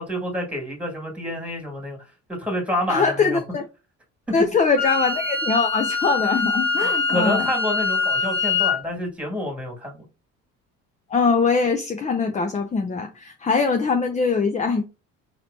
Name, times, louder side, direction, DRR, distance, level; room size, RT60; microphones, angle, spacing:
voice 1, 0.0-2.0 2.3-3.4 4.3-4.4 7.1-10.0, left 1 dB, 5° right, 2.1 m, -28 dB
voice 2, 2.9-3.6 4.3-7.5 11.1-14.9, left 4 dB, 20° left, 0.5 m, -22 dB
Wind instrument woodwind instrument, 4.8-8.8, left 4 dB, 55° left, 2.1 m, -24 dB
4.1 x 3.0 x 2.7 m
hypercardioid pair, 70°, 37 cm